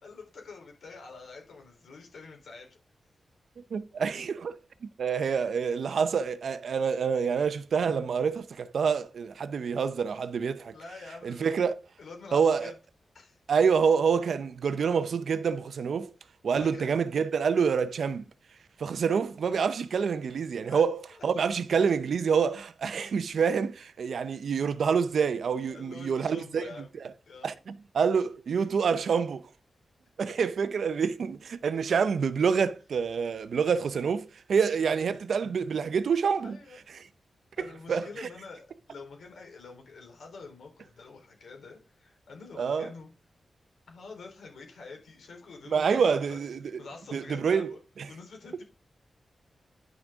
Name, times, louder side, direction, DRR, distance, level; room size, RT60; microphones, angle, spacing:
voice 1, 0.0-2.8 10.7-11.6 12.0-12.8 13.1-13.4 16.5-16.9 20.6-20.8 21.1-21.2 21.9-22.0 25.7-26.9 27.3-27.5 36.4-36.8 37.6-43.1 43.9-46.4 46.8-47.8 48.1-48.6, left 4 dB, 85° left, 3.7 m, -46 dB
voice 2, 3.7-10.7 11.2-11.7 12.3-12.7 13.5-16.1 16.4-18.2 18.8-26.7 27.4-27.5 27.9-29.5 30.2-36.6 37.9-38.3 42.6-42.9 45.7-46.8 47.1-47.7, right 6 dB, 70° right, 0.6 m, -27 dB
10.5 x 6.2 x 3.6 m
wide cardioid pair, 145°, 0 cm